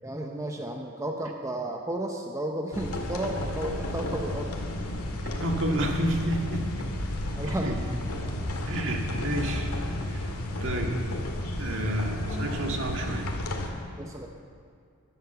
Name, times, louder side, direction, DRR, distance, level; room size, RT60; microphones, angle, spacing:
voice 1, 0.0-4.6 7.3-7.8 8.6-8.8 14.0-14.3, right 1 dB, 15° right, 2 dB, 0.8 m, -33 dB
sound 1, 2.7-13.7, left 1 dB, 85° left, 1.9 m, -32 dB
voice 2, 5.2-6.7 7.4-7.8 8.7-9.7 10.1-10.3 10.6-11.0 11.6-13.3, right 1 dB, 60° right, 1 dB, 1.9 m, -30 dB
13.0 x 12.0 x 7.0 m, 2.3 s
head